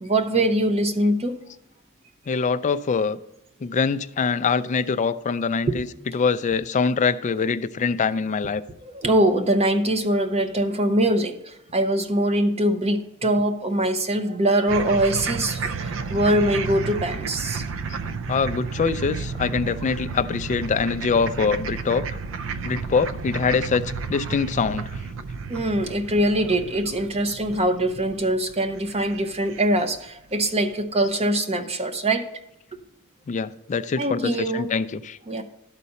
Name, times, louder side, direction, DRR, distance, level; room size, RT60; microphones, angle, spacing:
voice 1, 0.0-1.4 8.8-17.6 25.5-32.3 34.0-34.7 35.3-35.4, right 1 dB, 30° right, 0.7 m, -23 dB
voice 2, 2.3-3.2 3.6-8.6 18.3-22.1 22.6-24.9 33.3-35.2, left 5 dB, 35° left, 0.3 m, -24 dB
sound 1, 14.7-30.0, right 5 dB, 65° right, 0.5 m, -32 dB
12.0 x 4.1 x 6.8 m
head